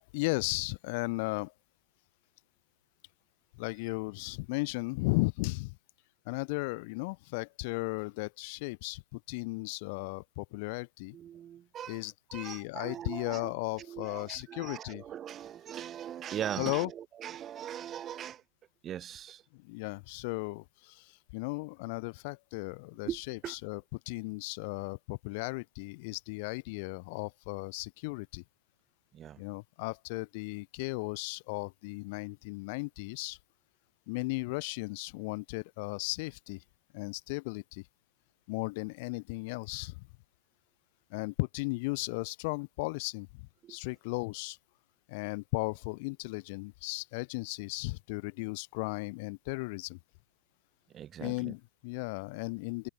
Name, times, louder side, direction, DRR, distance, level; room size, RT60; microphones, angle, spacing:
voice 1, 0.0-1.5 3.5-5.8 6.3-11.2 11.9-15.0 16.6-16.9 19.5-23.8 24.1-28.4 29.4-33.4 34.1-36.6 36.9-37.8 38.5-40.1 41.1-43.4 43.7-44.6 45.1-50.0 51.2-52.9, left 27 dB, 45° left, 0.4 m, -36 dB
voice 2, 11.1-12.0 12.3-13.5 13.8-18.4 18.8-19.4 23.0-23.6 29.1-29.4 43.6-43.8 50.9-51.5, right 10 dB, 25° right, 0.5 m, -40 dB
figure-of-eight pair, 110°, 0 cm